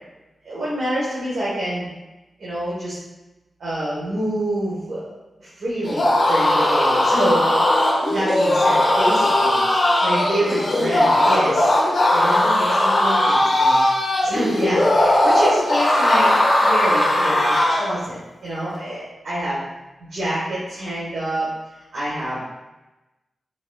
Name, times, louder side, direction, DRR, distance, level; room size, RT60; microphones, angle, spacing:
voice 1, 0.4-1.9 2.4-3.0 3.6-5.1 5.4-7.4 8.1-9.6 10.0-11.7 12.1-13.8 14.2-19.6 20.0-21.5 21.9-22.4, right 1 dB, 80° right, -9 dB, 1.3 m, -27 dB
sound 1, 5.8-17.9, left 1 dB, 60° left, 1.3 m, -18 dB
5.0 x 3.3 x 2.3 m, 1.0 s
cardioid pair, 50°, 0 cm